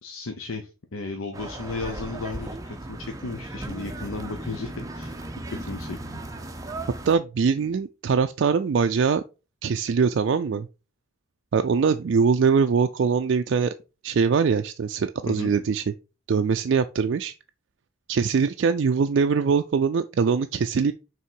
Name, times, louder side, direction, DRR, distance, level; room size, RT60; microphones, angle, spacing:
voice 1, 0.0-5.1 5.6-6.0 15.3-15.5, left 3 dB, 85° left, 0.8 m, -34 dB
sound 1, 1.3-7.2, right 1 dB, 15° right, 0.6 m, -36 dB
voice 2, 7.1-9.2 9.6-10.7 11.5-13.7 14.0-15.8 16.3-17.3 18.1-20.9, right 5 dB, 60° right, 0.3 m, -22 dB
5.9 x 3.7 x 4.5 m
head